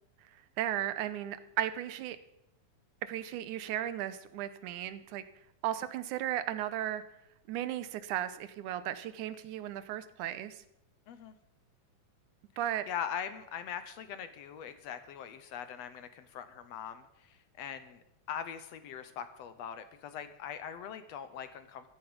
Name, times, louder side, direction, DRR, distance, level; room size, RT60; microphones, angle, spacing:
voice 1, 0.6-2.2 3.0-5.2 5.6-7.0 7.5-10.6 12.6-12.9, right 12 dB, 90° right, 13 dB, 2.3 m, -35 dB
voice 2, 12.9-18.0 18.3-21.9, left 8 dB, 70° left, 11 dB, 1.8 m, -41 dB
15.0 x 13.5 x 5.1 m, 0.85 s
omnidirectional pair, 3.5 m